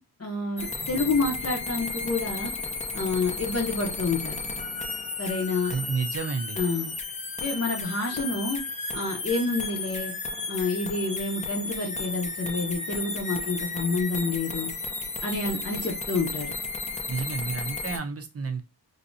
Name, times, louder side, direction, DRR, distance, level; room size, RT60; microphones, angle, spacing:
voice 1, 0.2-2.5 2.9-4.4 5.2-5.8 6.6-6.9 7.4-8.6 8.9-10.1 10.5-14.7 15.2-16.5, left 3 dB, 40° left, 0.8 m, -28 dB
sound 1, 0.6-18.0, left 3 dB, 20° left, 0.4 m, -33 dB
voice 2, 5.7-6.6 17.1-18.6, right 5 dB, 40° right, 0.5 m, -30 dB
3.1 x 2.8 x 2.6 m
wide cardioid pair, 130°, 39 cm